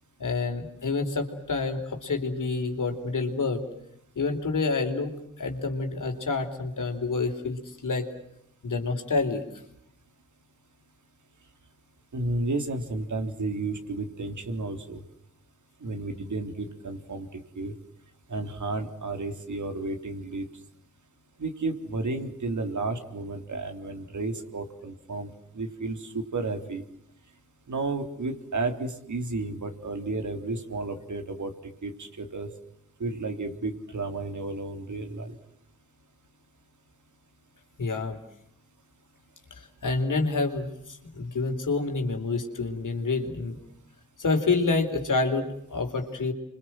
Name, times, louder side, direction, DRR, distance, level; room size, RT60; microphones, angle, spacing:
voice 1, 0.2-3.6 4.2-5.1 5.4-8.1 8.6-9.4 37.8-38.2 39.5-43.6 44.2-46.3, left 3 dB, 80° left, 5 dB, 4.3 m, -28 dB
voice 2, 12.1-15.0 15.8-17.7 18.3-20.5 21.4-26.8 27.7-31.5 31.8-32.5 33.0-35.4, right 3 dB, 70° right, 6 dB, 3.8 m, -32 dB
29.5 x 25.0 x 7.8 m, 0.75 s
cardioid pair, 50°, 31 cm